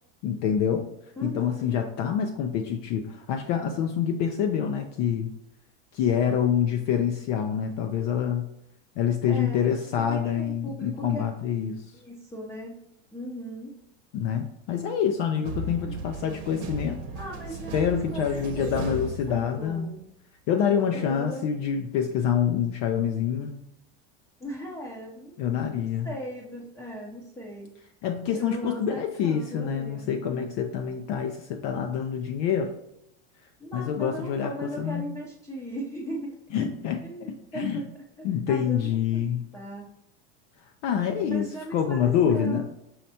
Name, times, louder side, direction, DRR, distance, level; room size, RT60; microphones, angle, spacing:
voice 1, 0.2-0.9 1.2-5.3 5.9-8.5 9.0-11.8 14.1-17.0 17.7-19.9 20.5-23.6 25.4-26.1 28.0-32.7 33.7-35.1 36.5-37.0 37.5-37.8 38.2-39.4 40.8-42.6, left 8 dB, 55° left, 4 dB, 0.5 m, -26 dB
voice 2, 1.2-1.8 9.3-11.3 11.9-12.8 13.1-13.7 15.8-16.1 17.1-20.1 20.5-21.5 24.4-25.4 26.0-27.7 28.3-30.5 33.6-36.3 37.0-37.8 38.2-39.2 39.5-39.8 41.3-42.7, equal, 10° left, -4 dB, 0.7 m, -38 dB
sound 1, 15.4-19.9, right 2 dB, 55° right, 0.9 m, -36 dB
5.6 x 3.2 x 2.7 m, 0.82 s
supercardioid pair, 140°, 33 cm